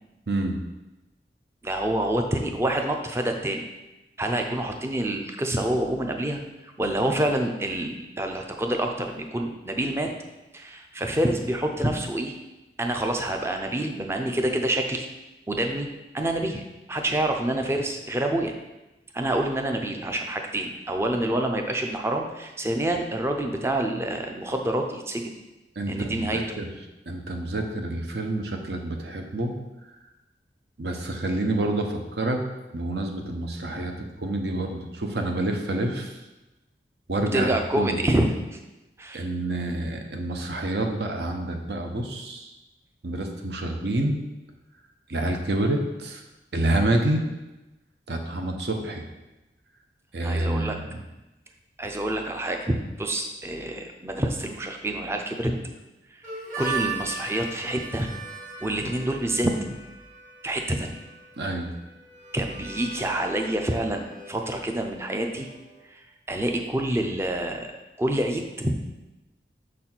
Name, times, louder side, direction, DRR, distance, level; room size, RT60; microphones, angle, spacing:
voice 1, 0.3-0.6 25.8-26.6 27.1-29.5 30.8-32.4 32.7-33.9 34.2-36.1 37.1-37.5 37.8-38.0 39.1-42.5 43.0-44.2 45.1-46.2 46.5-47.2 48.1-49.0 50.1-50.9 61.4-61.7, right 1 dB, 70° right, 4 dB, 0.8 m, -28 dB
voice 2, 1.6-3.7 4.2-10.1 10.5-12.4 12.8-15.1 15.5-15.9 16.1-18.5 19.1-25.3 25.9-26.6 37.3-38.6 39.0-39.3 50.2-50.8 51.8-55.5 56.1-56.2 56.6-58.1 58.6-59.5 60.4-61.0 62.3-65.5 65.9-68.8, right 1 dB, 15° right, 4 dB, 0.5 m, -27 dB
Harmonica, 56.2-65.8, right 4 dB, 45° right, 1.7 m, -39 dB
6.4 x 4.2 x 4.4 m, 1.0 s
head